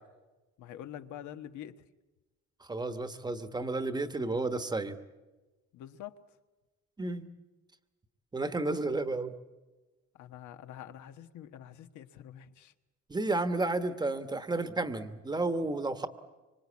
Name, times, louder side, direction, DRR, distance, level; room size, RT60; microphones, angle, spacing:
voice 1, 0.6-1.8 5.7-6.2 10.1-12.7, left 11 dB, 85° left, 8 dB, 1.4 m, -46 dB
voice 2, 2.6-5.0 7.0-7.3 8.3-9.4 13.1-16.1, right 2 dB, 15° right, 9 dB, 1.1 m, -32 dB
25.0 x 25.0 x 8.5 m, 1.2 s
cardioid pair, 165°, 29 cm